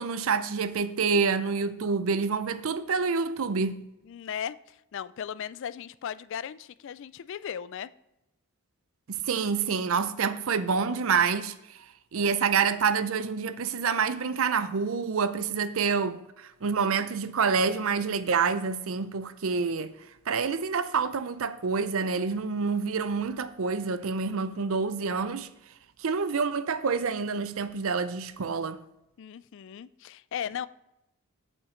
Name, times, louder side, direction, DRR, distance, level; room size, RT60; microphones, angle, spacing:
voice 1, 0.0-3.9 9.1-11.9 12.1-19.9 20.3-25.5 26.0-28.8, right 5 dB, 65° right, 0.5 m, -27 dB
voice 2, 4.1-7.9 29.2-30.7, left 8 dB, 55° left, 0.3 m, -37 dB
8.0 x 7.3 x 3.8 m
head